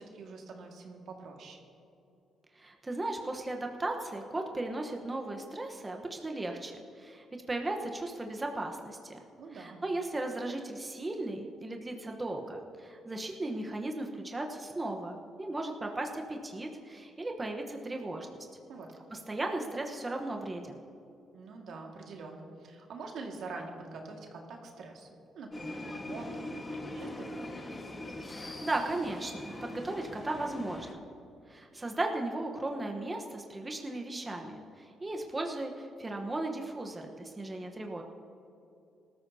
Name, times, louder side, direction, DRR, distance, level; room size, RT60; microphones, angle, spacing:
voice 1, 0.0-1.6 9.4-9.8 18.7-18.9 21.3-25.1 25.3-27.3, right 3 dB, 70° right, 1 dB, 1.9 m, -45 dB
voice 2, 2.5-9.2 9.5-18.5 19.1-20.8 28.3-31.0 31.5-38.0, right 2 dB, 20° right, 2 dB, 1.1 m, -36 dB
sound 1, 25.5-30.9, left 1 dB, 25° left, 1.5 m, -41 dB
19.5 x 13.5 x 2.8 m, 2.8 s
cardioid pair, 90°, 0 cm